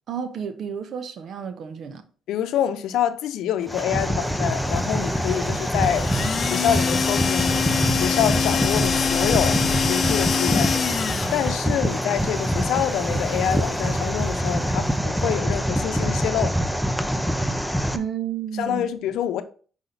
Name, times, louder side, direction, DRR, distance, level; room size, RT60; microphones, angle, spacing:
voice 1, 0.1-2.0 17.9-18.9, right 8 dB, 65° right, 1.0 m, -31 dB
voice 2, 2.3-6.1 6.4-7.5 7.9-10.8 11.3-16.5 18.6-19.4, left 10 dB, 85° left, 0.7 m, -26 dB
sound 1, 3.6-15.0, left 1 dB, 30° left, 2.5 m, -40 dB
sound 2, 3.7-18.0, equal, ahead, 0.7 m, -25 dB
sound 3, 5.8-11.7, left 6 dB, 45° left, 0.7 m, -25 dB
5.6 x 4.9 x 4.0 m
cardioid pair, 90°, 0 cm